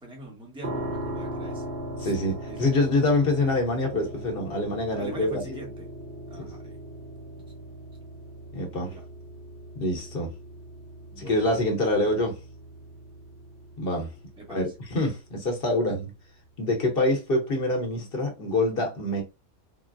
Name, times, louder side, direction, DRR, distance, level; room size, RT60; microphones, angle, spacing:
voice 1, 0.0-1.6 2.0-3.1 5.0-5.8 6.3-6.8 8.8-9.0 11.1-11.4 14.4-14.7, right 2 dB, 5° right, 0.7 m, -42 dB
sound 1, 0.6-15.5, right 1 dB, 50° right, 0.6 m, -39 dB
voice 2, 2.0-5.4 6.4-6.5 8.5-8.9 9.7-10.3 11.2-12.4 13.8-14.1 14.5-16.1 16.6-19.2, left 2 dB, 45° left, 0.9 m, -25 dB
3.8 x 2.0 x 2.4 m
omnidirectional pair, 1.5 m